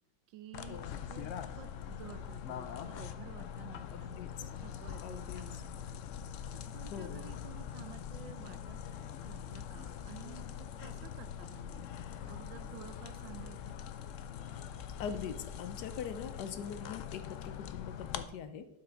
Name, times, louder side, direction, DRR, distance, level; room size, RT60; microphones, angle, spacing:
voice 1, 0.3-1.3 1.6-6.0 6.7-8.8 9.2-11.9 12.2-13.7, right 11 dB, 85° right, 12 dB, 1.3 m, -52 dB
sound 1, 0.5-18.2, left 8 dB, 90° left, 0.6 m, -43 dB
voice 2, 3.9-4.5 5.0-5.4 6.9-7.2 14.4-14.6 15.0-18.7, left 7 dB, 75° left, 11 dB, 1.2 m, -42 dB
12.0 x 5.8 x 3.8 m, 0.89 s
omnidirectional pair, 2.0 m